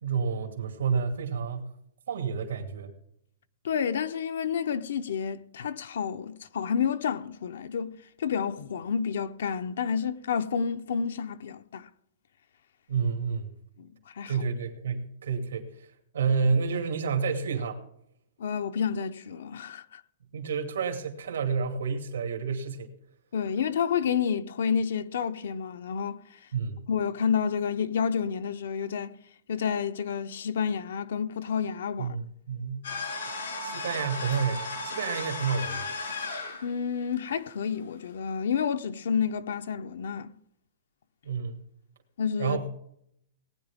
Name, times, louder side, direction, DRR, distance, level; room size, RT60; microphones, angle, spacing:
voice 1, 0.0-1.7 2.1-2.9 12.9-13.5 14.3-15.9 16.1-17.8 20.3-22.9 26.5-26.8 32.0-32.9 33.6-35.9 41.2-41.6 42.4-42.7, right 5 dB, 90° right, 2.5 m, -29 dB
voice 2, 3.6-7.9 8.2-11.9 13.8-14.3 18.4-20.0 23.3-26.4 26.9-29.2 29.5-32.2 36.6-40.3 42.2-42.6, left 7 dB, 65° left, 0.7 m, -30 dB
sound 1, 32.8-36.6, left 3 dB, 85° left, 5.0 m, -35 dB
18.5 x 9.8 x 3.5 m
hypercardioid pair, 180°, 0 cm